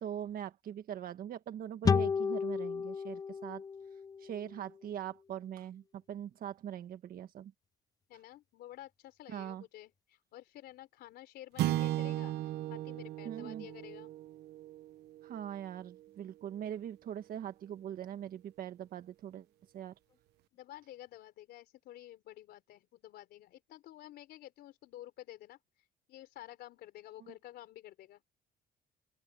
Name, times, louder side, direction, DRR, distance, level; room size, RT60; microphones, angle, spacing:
voice 1, 0.0-3.6 4.2-7.5 9.3-9.6 13.2-13.7 15.2-19.5 19.7-19.9, right 10 dB, 60° right, 1.6 m, -42 dB
sound 1, 1.8-5.2, left 6 dB, 20° left, 0.3 m, -33 dB
voice 2, 8.1-14.1 20.5-25.6 26.1-28.2, left 13 dB, 75° left, 3.9 m, -51 dB
sound 2, 11.6-16.0, right 14 dB, 80° right, 1.0 m, -37 dB
open air
cardioid pair, 110°, 17 cm